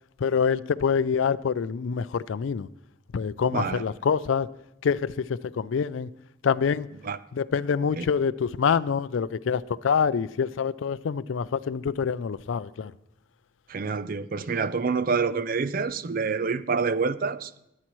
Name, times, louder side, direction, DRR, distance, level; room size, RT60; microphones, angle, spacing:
voice 1, 0.2-2.7 3.1-4.5 4.8-6.1 6.4-6.9 7.3-12.9, left 6 dB, 85° left, 0.4 m, -26 dB
voice 2, 3.5-3.8 7.0-7.2 8.0-8.1 13.7-17.5, right 5 dB, 50° right, 0.5 m, -27 dB
21.0 x 8.5 x 3.1 m
head